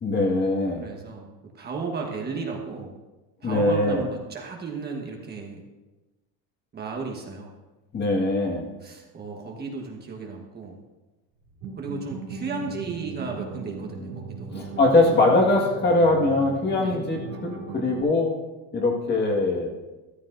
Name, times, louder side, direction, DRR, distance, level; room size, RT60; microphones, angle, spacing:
voice 1, 0.0-0.9 3.4-4.1 7.9-8.7 14.5-18.4 18.7-19.7, left 2 dB, 25° left, 0 dB, 1.8 m, -22 dB
voice 2, 0.8-3.0 3.4-5.6 6.7-7.5 8.8-10.8 11.8-14.8 16.8-17.0, right 4 dB, 25° right, 0 dB, 1.3 m, -35 dB
sound 1, 11.5-18.0, right 4 dB, 50° right, 3.3 m, -38 dB
13.5 x 13.5 x 2.6 m, 1.1 s
cardioid pair, 150°, 38 cm